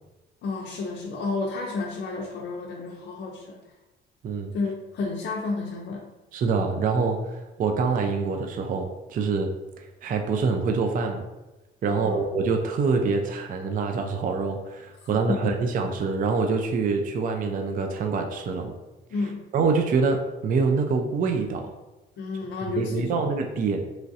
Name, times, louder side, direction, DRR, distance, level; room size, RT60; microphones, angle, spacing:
voice 1, 0.4-3.6 4.5-6.0 11.8-12.2 15.3-15.6 19.1-19.4 22.2-23.2, left 3 dB, 60° left, 0 dB, 0.4 m, -31 dB
voice 2, 6.3-9.5 10.0-11.3 11.8-18.7 19.5-21.7 22.8-23.9, right 4 dB, 45° right, 4 dB, 0.4 m, -25 dB
3.0 x 2.4 x 2.6 m, 1.1 s
cardioid pair, 90°, 20 cm